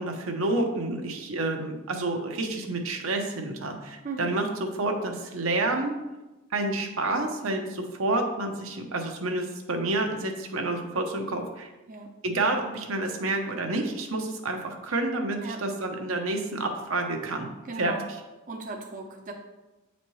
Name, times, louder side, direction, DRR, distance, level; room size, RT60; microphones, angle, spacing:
voice 1, 0.0-6.0 6.5-11.7 12.2-17.5 17.8-17.9, right 2 dB, 75° right, 3 dB, 0.8 m, -29 dB
voice 2, 4.0-4.4 11.9-12.1 15.4-15.6 17.6-18.1 18.5-19.3, right 3 dB, 40° right, 1 dB, 0.6 m, -37 dB
8.4 x 4.1 x 3.1 m, 1.1 s
head